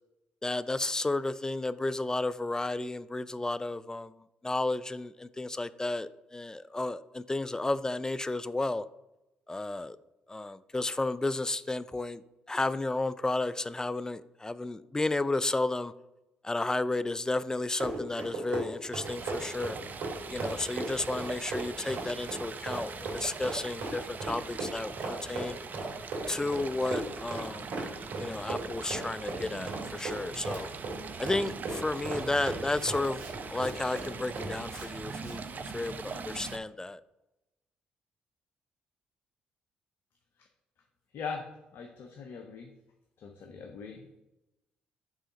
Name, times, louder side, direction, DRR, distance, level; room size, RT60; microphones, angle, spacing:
voice 1, 0.4-4.1 4.4-8.8 9.5-10.0 10.3-12.2 12.5-15.9 16.4-19.8 20.3-25.6 26.3-27.7 28.2-30.7 31.2-37.0, left 2 dB, 15° left, 15 dB, 0.3 m, -32 dB
Run, 17.5-34.9 35.2-35.4, right 2 dB, 70° right, 2.0 m, -38 dB
Stream, 19.0-36.6, right 5 dB, 45° right, 0.5 m, -42 dB
voice 2, 41.1-41.4 41.7-42.7 43.2-44.2, left 5 dB, 65° left, 3 dB, 0.7 m, -41 dB
4.9 x 3.7 x 5.1 m, 0.95 s
hypercardioid pair, 45°, 4 cm